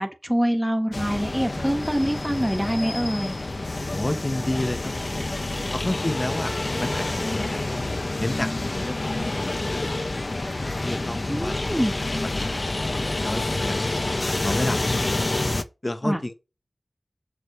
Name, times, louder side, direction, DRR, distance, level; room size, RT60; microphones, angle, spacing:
voice 1, 0.0-3.4 11.3-11.9 16.0-16.2, equal, 5° right, 1.5 m, -25 dB
sound 1, 0.9-15.6, left 2 dB, 50° left, 0.8 m, -28 dB
voice 2, 3.9-5.2 5.7-6.5 6.8-7.6 8.2-9.9 10.8-11.6 12.2-12.7 13.2-13.8 14.2-14.8 15.8-16.3, left 1 dB, 35° left, 1.1 m, -30 dB
6.5 x 4.8 x 5.6 m
wide cardioid pair, 40°, 0 cm